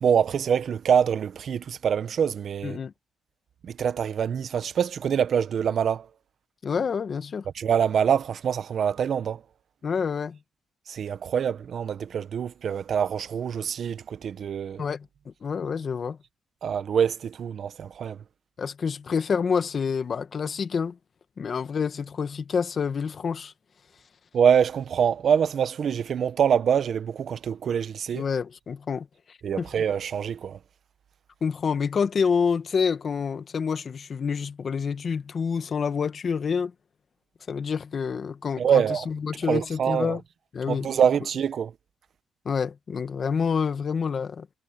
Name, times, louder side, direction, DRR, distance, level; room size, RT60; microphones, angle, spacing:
voice 1, 0.0-2.8 3.6-6.1 7.5-9.4 10.9-14.8 16.6-18.2 24.3-28.2 29.4-30.6 38.6-39.1 39.5-40.2 40.7-41.7, right 8 dB, 55° right, 1.3 m, -25 dB
voice 2, 2.6-2.9 6.6-7.5 9.8-10.4 14.8-16.2 18.6-21.0 21.4-23.5 28.1-29.7 31.4-36.7 37.5-40.2 40.5-40.9 42.5-44.5, left 6 dB, 45° left, 1.6 m, -28 dB
cardioid pair, 90°, 0 cm